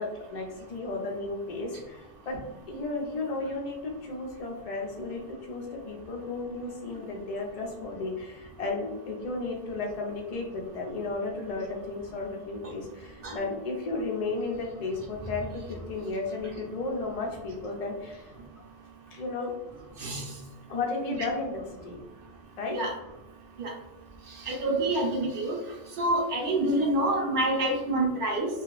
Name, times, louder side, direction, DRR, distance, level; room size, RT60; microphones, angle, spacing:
voice 1, 0.0-2.4 2.7-18.3 19.1-19.5 20.7-22.0 22.6-22.8, left 3 dB, 55° left, -1 dB, 0.4 m, -34 dB
voice 2, 24.4-25.6 26.0-28.5, right 1 dB, 65° right, -1 dB, 0.8 m, -27 dB
2.8 x 2.4 x 3.0 m, 1.0 s
omnidirectional pair, 1.1 m